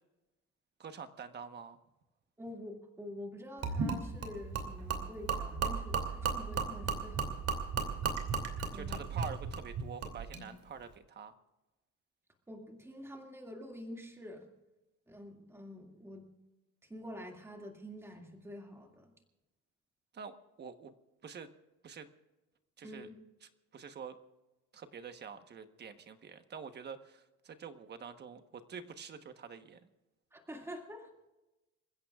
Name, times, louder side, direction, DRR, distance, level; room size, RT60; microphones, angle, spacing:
voice 1, 0.8-1.8 8.7-11.3 20.1-20.9 21.2-21.5 21.8-22.1 22.8-23.1 23.7-24.2 24.7-29.8, right 6 dB, 35° right, 8 dB, 1.1 m, -46 dB
voice 2, 2.4-7.5 8.7-9.0 12.5-14.5 15.1-16.2 16.9-19.1 22.8-23.1 30.3-31.3, left 1 dB, 10° right, 2 dB, 2.2 m, -47 dB
Gurgling / Liquid, 3.6-10.4, right 5 dB, 50° right, 2.7 m, -35 dB
28.0 x 15.5 x 2.4 m, 1.0 s
cardioid pair, 170°, 30 cm